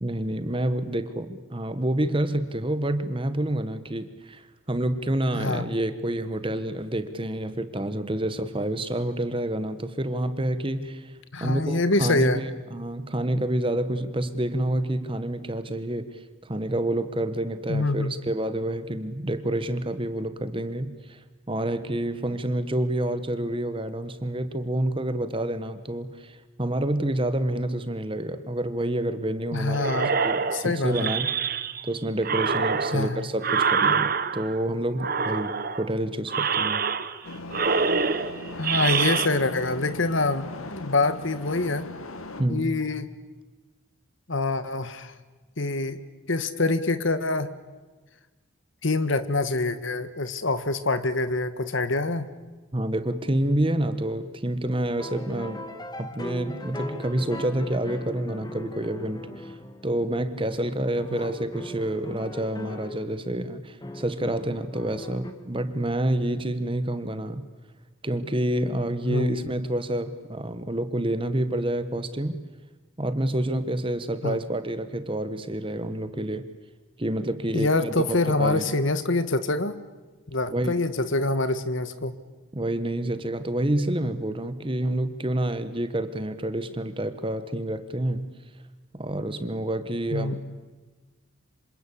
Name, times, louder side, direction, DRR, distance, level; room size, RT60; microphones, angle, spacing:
voice 1, 0.0-11.1 11.4-21.2 21.5-31.3 31.8-36.8 42.4-42.7 52.7-55.7 56.0-59.5 59.8-67.4 68.0-72.4 73.0-76.4 77.0-78.7 80.5-80.8 82.5-88.3 88.9-90.4, right 1 dB, 25° right, 11 dB, 1.3 m, -28 dB
voice 2, 5.3-5.7 11.3-12.4 17.7-18.2 29.5-30.1 30.5-31.1 32.9-33.2 38.6-40.4 40.7-41.9 42.5-43.1 44.3-45.1 45.6-46.0 46.3-47.5 48.8-52.3 61.1-61.3 69.0-69.4 74.2-74.4 77.5-79.8 80.3-82.1 90.1-90.4, left 2 dB, 65° left, 12 dB, 1.6 m, -25 dB
sound 1, 29.8-31.9 32.2-34.6 35.0-35.9 36.3-37.3 37.5-39.3, right 5 dB, 45° right, 1.0 m, -26 dB
sound 2, 37.2-42.4, left 2 dB, 85° left, 1.9 m, -38 dB
sound 3, 55.0-60.0 60.4-63.1 63.8-65.3, equal, 20° left, 1.9 m, -39 dB
27.0 x 25.5 x 8.5 m, 1.3 s
head